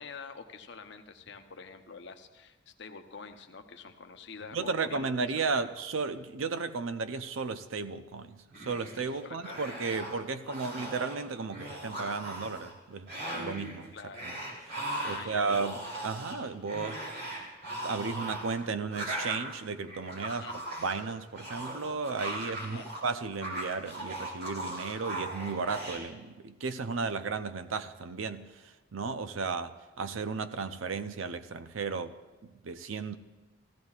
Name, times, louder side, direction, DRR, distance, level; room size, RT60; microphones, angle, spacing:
voice 1, 0.0-5.1 5.5-5.7 9.1-9.6 10.5-10.6 13.9-14.3 15.0-15.6 20.3-20.6 22.6-22.9, left 5 dB, 55° left, 0.7 m, -47 dB
voice 2, 4.5-13.9 15.0-17.0 17.8-20.5 20.8-28.5 28.9-32.2 32.4-33.2, right 4 dB, 75° right, 0.6 m, -34 dB
sound 1, 8.5-9.1 9.4-10.2 10.5-11.2 11.5-12.7 13.1-13.8 14.1-23.0 23.3-26.0, right 1 dB, 50° right, 3.2 m, -38 dB
16.5 x 14.5 x 2.4 m
head